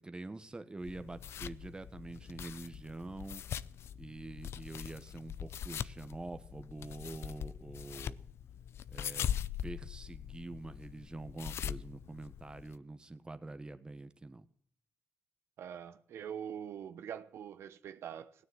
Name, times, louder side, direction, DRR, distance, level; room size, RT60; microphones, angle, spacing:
voice 1, 0.0-3.4 4.0-8.2 8.9-9.3 9.6-14.5, right 2 dB, 20° right, 1.3 m, -45 dB
sound 1, 0.8-12.8, left 9 dB, 80° left, 0.5 m, -42 dB
voice 2, 15.6-18.4, right 8 dB, 85° right, 1.1 m, -44 dB
17.0 x 9.6 x 8.1 m
cardioid pair, 90°, 4 cm